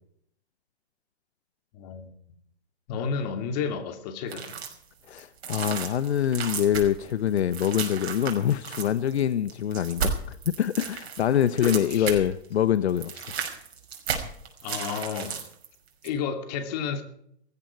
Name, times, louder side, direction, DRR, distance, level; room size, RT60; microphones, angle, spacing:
voice 1, 1.7-2.1 2.9-4.5 11.6-12.2 14.6-15.4 16.0-17.0, left 6 dB, 40° left, 7 dB, 2.8 m, -31 dB
sound 1, 4.3-4.8 5.2-12.4 12.7-15.7 16.0-16.1, right 6 dB, 70° right, 5.5 m, -34 dB
voice 2, 5.1-13.3, left 10 dB, 75° left, 15 dB, 1.0 m, -25 dB
18.0 x 15.0 x 4.7 m, 0.69 s
hypercardioid pair, 150°, 33 cm